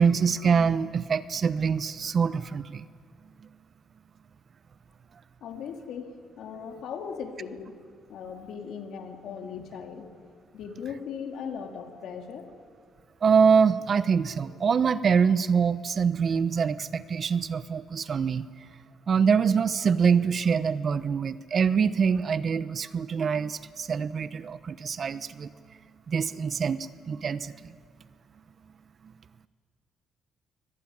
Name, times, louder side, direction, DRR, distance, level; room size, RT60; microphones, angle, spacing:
voice 1, 0.0-2.8 13.2-18.4 19.1-25.5 26.1-27.5, right 6 dB, 50° right, 15 dB, 0.9 m, -24 dB
voice 2, 5.4-7.8 8.1-10.1 10.5-12.5, left 6 dB, 75° left, 4 dB, 2.8 m, -38 dB
24.0 x 19.0 x 9.8 m, 2.1 s
cardioid pair, 90°, 0 cm